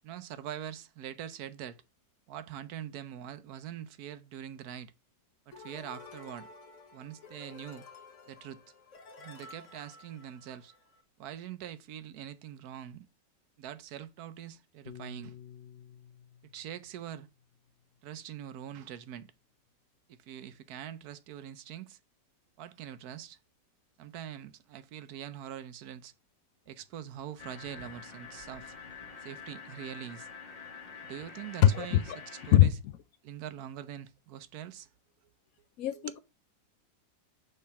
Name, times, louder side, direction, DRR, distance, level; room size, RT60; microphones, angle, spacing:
voice 1, 0.0-1.8 2.3-4.9 5.5-6.5 6.9-7.8 8.3-8.6 9.2-10.7 11.2-13.1 13.6-15.4 16.5-17.3 18.0-19.3 20.1-22.0 22.6-23.4 24.0-26.1 26.7-28.7 29.2-30.3 31.0-32.8 33.2-34.9 35.9-36.1, right 10 dB, 65° right, 1.0 m, -43 dB
sound 1, 5.5-11.0, left 3 dB, 50° left, 1.3 m, -52 dB
Piano, 14.9-19.3, left 10 dB, 90° left, 1.7 m, -53 dB
sound 2, 27.4-32.6, left 5 dB, 30° left, 0.9 m, -47 dB
voice 2, 35.8-36.2, left 14 dB, 70° left, 0.9 m, -23 dB
6.3 x 3.5 x 5.7 m
omnidirectional pair, 1.9 m